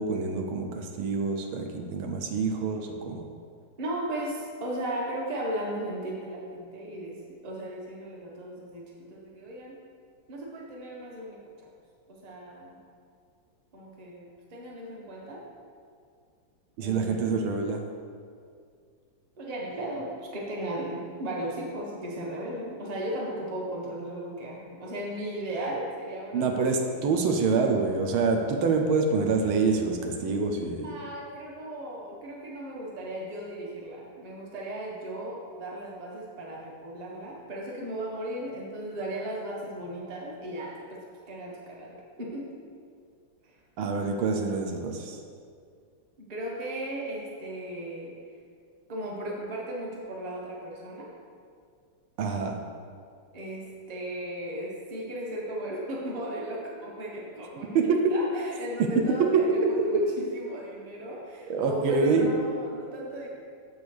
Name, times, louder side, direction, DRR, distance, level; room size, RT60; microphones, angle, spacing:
voice 1, 0.0-3.3 16.8-17.8 26.3-30.9 43.8-45.2 52.2-52.6 57.7-58.0 59.3-59.4 61.5-62.3, right 4 dB, 85° right, 3 dB, 1.6 m, -26 dB
voice 2, 3.8-7.2 7.4-9.8 10.3-11.7 12.1-12.8 13.7-15.4 16.8-17.4 19.4-26.9 30.8-41.0 41.3-42.5 43.4-43.6 46.2-48.1 48.9-51.1 53.3-63.3, right 1 dB, 25° right, -3 dB, 1.0 m, -36 dB
7.2 x 4.8 x 6.2 m, 2.2 s
omnidirectional pair, 2.2 m